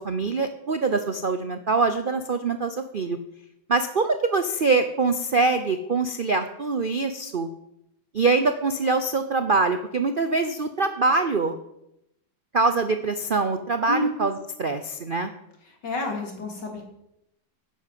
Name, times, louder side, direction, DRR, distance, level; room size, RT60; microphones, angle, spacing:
voice 1, 0.0-3.2 3.7-7.5 8.1-11.6 12.5-14.3 14.6-15.3, right 3 dB, 90° right, 8 dB, 0.4 m, -24 dB
voice 2, 15.6-16.8, left 1 dB, 60° left, 2 dB, 3.5 m, -29 dB
11.0 x 10.0 x 7.6 m, 0.82 s
omnidirectional pair, 2.1 m